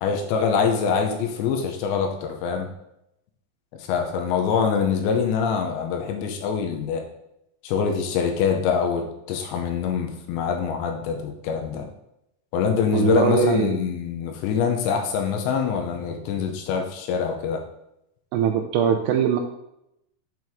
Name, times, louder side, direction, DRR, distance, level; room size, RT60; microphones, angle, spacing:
voice 1, 0.0-2.7 3.7-7.0 7.6-11.9 12.5-17.6, left 6 dB, 80° left, 3 dB, 2.9 m, -24 dB
voice 2, 12.9-13.8 18.3-19.4, right 8 dB, 90° right, 4 dB, 2.3 m, -21 dB
7.8 x 4.6 x 3.6 m, 0.83 s
omnidirectional pair, 5.3 m